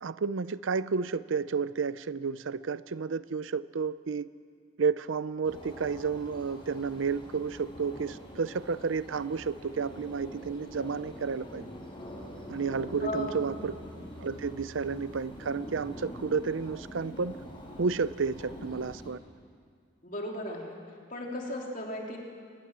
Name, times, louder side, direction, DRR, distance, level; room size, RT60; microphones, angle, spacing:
voice 1, 0.0-4.3 4.8-11.7 12.5-13.8 14.2-17.4 17.8-19.2, right 5 dB, 85° right, 16 dB, 0.6 m, -31 dB
sound 1, 5.4-19.1, equal, 25° left, 5.5 m, -44 dB
voice 2, 13.0-13.4 20.0-20.8 21.1-22.2, left 1 dB, 45° left, 0 dB, 3.5 m, -35 dB
25.5 x 19.5 x 7.5 m, 2.1 s
head